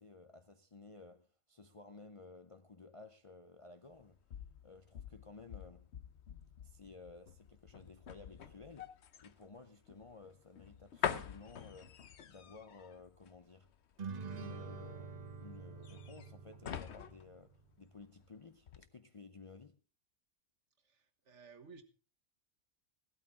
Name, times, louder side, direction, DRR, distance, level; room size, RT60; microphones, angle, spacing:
voice 1, 0.0-4.2 4.6-5.9 6.6-8.9 9.2-12.0 12.3-13.7 14.3-19.8, left 3 dB, 35° left, 0.5 m, -55 dB
sound 1, 3.9-18.3 18.6-18.9, left 8 dB, 60° left, 1.1 m, -46 dB
sound 2, 14.0-17.6, right 5 dB, 40° right, 0.8 m, -47 dB
voice 2, 20.9-21.8, right 5 dB, 60° right, 1.6 m, -56 dB
16.5 x 12.5 x 3.6 m
omnidirectional pair, 1.4 m